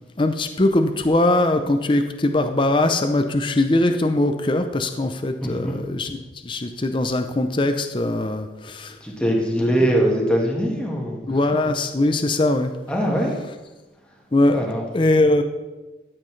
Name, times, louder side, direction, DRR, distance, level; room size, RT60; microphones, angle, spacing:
voice 1, 0.2-6.2 6.4-9.0 11.3-12.7 14.3-14.6 14.9-15.4, left 2 dB, 30° left, 7 dB, 0.6 m, -21 dB
voice 2, 5.4-5.8 9.0-11.2 12.9-13.4 14.5-14.8, equal, 5° left, -2 dB, 1.6 m, -22 dB
13.0 x 7.8 x 3.2 m, 1.1 s
head